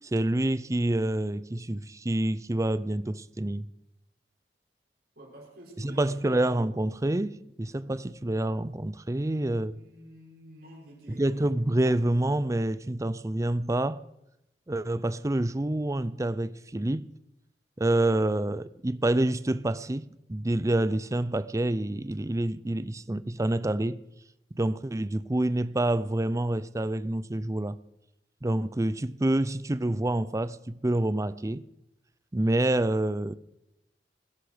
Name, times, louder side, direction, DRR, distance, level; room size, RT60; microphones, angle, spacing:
voice 1, 0.0-3.7 5.8-9.7 11.1-14.0 14.7-17.1 17.8-24.0 24.5-27.8 28.4-31.6 32.3-33.3, right 1 dB, 20° right, 0.5 m, -27 dB
voice 2, 5.1-6.2 9.1-11.8, equal, 60° right, 6.1 m, -50 dB
20.0 x 11.0 x 5.1 m
head